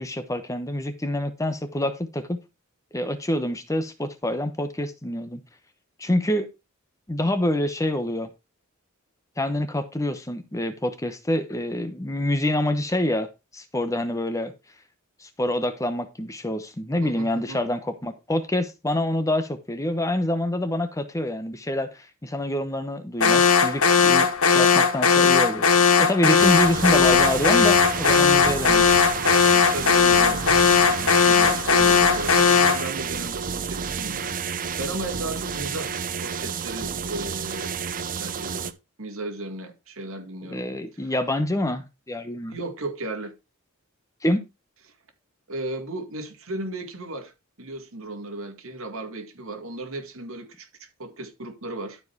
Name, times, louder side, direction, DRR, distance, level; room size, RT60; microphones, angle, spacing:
voice 1, 0.0-2.4 2.9-5.4 6.0-6.5 7.1-8.3 9.4-14.5 15.2-25.7 26.0-28.9 40.5-42.6 44.2-44.4, left 1 dB, 15° left, 0.9 m, -26 dB
voice 2, 17.0-17.6 29.5-37.7 38.1-38.7 39.0-40.6 41.0-41.1 42.5-43.3 45.5-47.3 47.6-52.0, right 2 dB, 65° right, 2.2 m, -35 dB
Alarm, 23.2-32.9, left 6 dB, 75° left, 1.1 m, -18 dB
sound 1, 26.4-38.7, right 6 dB, 40° right, 0.7 m, -30 dB
12.0 x 4.8 x 4.6 m
head